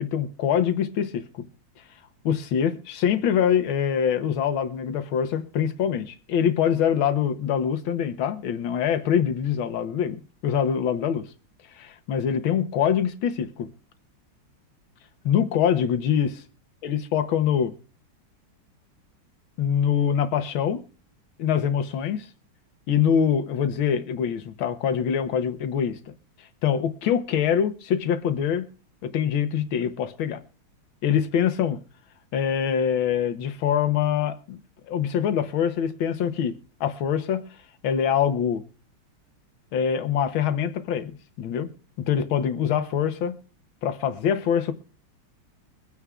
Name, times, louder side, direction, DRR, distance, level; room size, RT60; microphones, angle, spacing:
voice 1, 0.0-1.5 2.3-11.3 11.7-13.7 15.3-16.3 16.8-17.7 19.6-20.8 21.4-22.3 22.9-26.1 26.6-28.7 29.0-30.4 31.0-31.8 32.3-34.6 34.9-37.4 37.8-38.6 39.7-41.7 42.0-43.4 43.8-44.7, left 8 dB, 70° left, 1.7 m, -24 dB
23.0 x 9.5 x 2.4 m
omnidirectional pair, 2.4 m